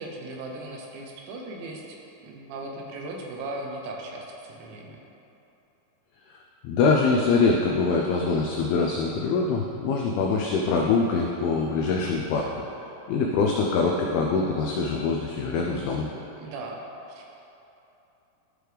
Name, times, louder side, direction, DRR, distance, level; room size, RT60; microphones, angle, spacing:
voice 1, 0.0-2.0 2.2-5.0 16.4-16.8 17.1-17.2, right 2 dB, 85° right, 0 dB, 3.2 m, -37 dB
voice 2, 6.3-12.6 13.1-16.1, left 4 dB, 90° left, 0 dB, 2.2 m, -24 dB
13.0 x 4.7 x 3.4 m, 3.0 s
omnidirectional pair, 5.0 m